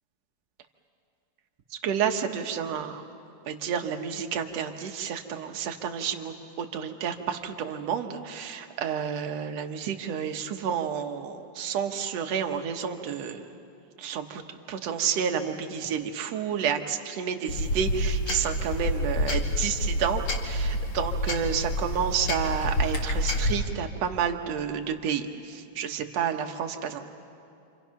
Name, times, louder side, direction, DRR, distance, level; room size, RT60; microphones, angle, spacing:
voice 1, 1.8-3.0 3.5-13.5 14.0-14.4 14.7-27.0, right 7 dB, 60° right, 5 dB, 2.1 m, -30 dB
sound 1, 17.5-23.5, left 1 dB, 45° left, 2.7 m, -28 dB
28.0 x 27.5 x 5.8 m, 2.6 s
omnidirectional pair, 3.7 m